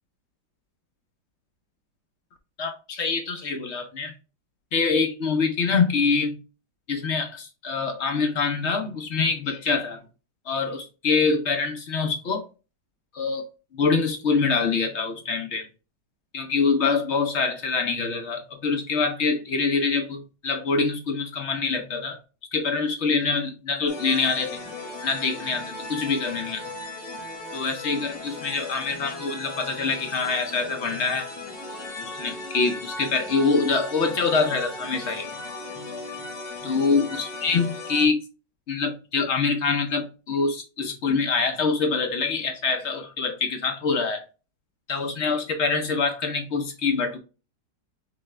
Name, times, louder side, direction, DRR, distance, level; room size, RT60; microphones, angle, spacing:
voice 1, 2.6-4.1 4.7-6.4 6.9-10.0 10.5-12.4 13.1-13.5 13.7-15.7 16.3-22.2 22.5-24.6 25.0-26.7 27.5-31.3 32.0-35.3 36.6-38.2 38.7-44.2 44.9-47.2, left 4 dB, 60° left, 0.7 m, -25 dB
sound 1, 23.9-38.1, left 2 dB, 80° left, 2.0 m, -37 dB
4.2 x 3.5 x 3.2 m
omnidirectional pair, 1.8 m